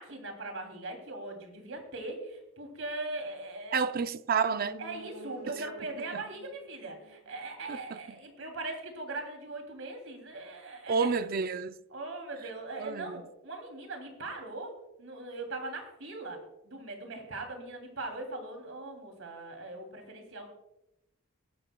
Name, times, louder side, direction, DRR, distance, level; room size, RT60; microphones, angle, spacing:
voice 1, 0.0-3.8 4.8-11.2 11.9-20.5, right 2 dB, 75° right, 3.0 m, -40 dB
voice 2, 3.7-4.8 5.5-5.6 6.1-6.2 7.7-8.0 10.9-11.7 12.8-13.2, right 5 dB, 45° right, 0.5 m, -30 dB
sound 1, 4.3-8.0 8.3-8.4, right 3 dB, 90° right, 1.1 m, -49 dB
22.0 x 10.5 x 2.3 m
head